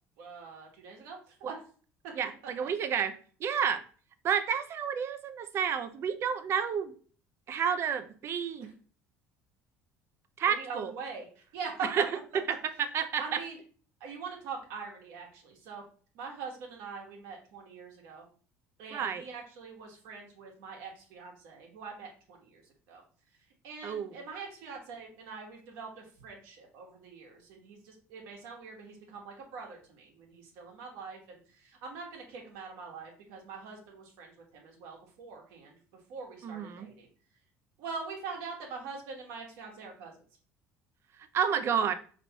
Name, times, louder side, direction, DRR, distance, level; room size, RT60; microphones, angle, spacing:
voice 1, 0.2-1.6 2.0-2.1 2.6-2.7 10.5-11.9 13.2-13.6 14.0-15.8 16.1-18.2 18.8-22.6 22.9-23.0 23.6-37.1 37.8-40.1, right 5 dB, 80° right, 0 dB, 1.2 m, -43 dB
voice 2, 2.1-3.1 3.4-3.8 4.2-6.9 7.5-8.7 10.4-10.9 11.9-12.1 12.3-13.4 18.9-19.2 23.8-24.1 36.4-36.9 41.3-41.9, right 7 dB, 50° right, 11 dB, 0.5 m, -30 dB
4.2 x 3.0 x 2.8 m, 0.42 s
supercardioid pair, 100°, 6 cm